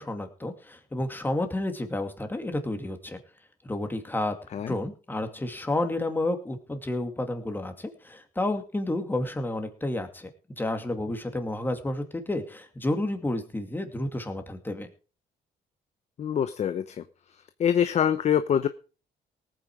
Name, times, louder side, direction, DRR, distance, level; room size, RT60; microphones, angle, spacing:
voice 1, 0.0-3.2 3.6-4.4 4.7-10.3 10.6-14.9, left 1 dB, 10° left, 6 dB, 2.4 m, -30 dB
voice 2, 16.2-17.0 17.6-18.7, left 9 dB, 40° left, 11 dB, 0.8 m, -24 dB
18.5 x 9.1 x 4.8 m, 0.36 s
cardioid pair, 135°, 17 cm